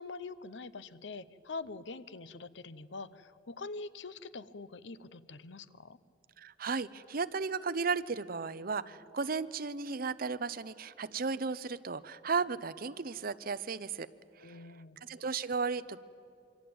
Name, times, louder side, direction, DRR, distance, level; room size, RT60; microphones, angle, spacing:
voice 1, 0.0-6.0 14.4-15.0, left 3 dB, 70° left, 15 dB, 0.8 m, -44 dB
voice 2, 6.4-14.1 14.4-14.6 15.0-16.0, right 4 dB, 50° right, 14 dB, 0.8 m, -35 dB
26.5 x 24.5 x 8.8 m, 2.6 s
head